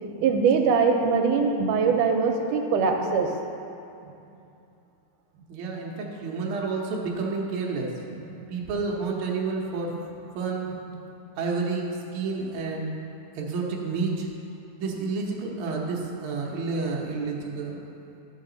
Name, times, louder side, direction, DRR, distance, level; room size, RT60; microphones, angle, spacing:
voice 1, 0.2-3.3 8.1-8.5 10.7-10.8, right 5 dB, 85° right, 3 dB, 2.2 m, -22 dB
voice 2, 5.5-7.9 8.5-9.9 10.3-10.7 11.4-12.9 13.3-14.3 14.8-17.8, right 4 dB, 60° right, -2 dB, 1.4 m, -30 dB
12.0 x 5.3 x 3.9 m, 2.7 s
omnidirectional pair, 3.6 m